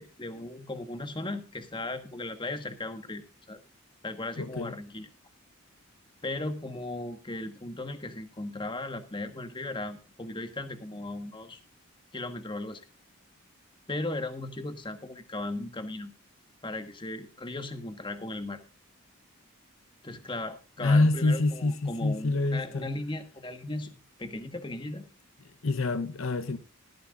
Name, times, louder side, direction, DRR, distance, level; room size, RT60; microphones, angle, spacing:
voice 1, 0.0-3.2 3.5-3.6 4.0-5.1 6.2-11.6 12.1-12.8 13.9-16.1 16.6-18.6 20.0-25.0, left 2 dB, 20° left, 1.4 m, -37 dB
voice 2, 4.4-4.8 20.8-22.9 25.6-26.6, left 2 dB, 65° left, 0.8 m, -26 dB
17.0 x 13.5 x 2.5 m
head